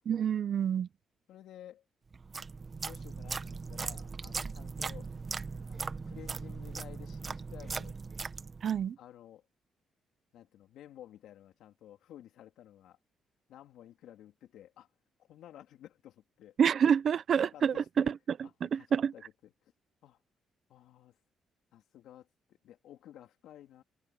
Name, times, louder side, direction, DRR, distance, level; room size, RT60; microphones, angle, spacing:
voice 1, 0.1-0.9 8.6-9.0 16.6-19.1, right 8 dB, 55° right, 0.8 m, -28 dB
voice 2, 1.3-1.8 2.3-2.5 2.8-5.1 5.7-7.9 9.0-9.4 10.3-13.0 13.5-14.9 15.2-16.6 17.5-18.1 18.4-19.7 20.0-20.2 20.7-21.2 21.7-23.8, left 12 dB, 80° left, 3.4 m, -53 dB
sound 1, 2.1-8.8, right 4 dB, 35° right, 1.2 m, -39 dB
cardioid pair, 90°, 0 cm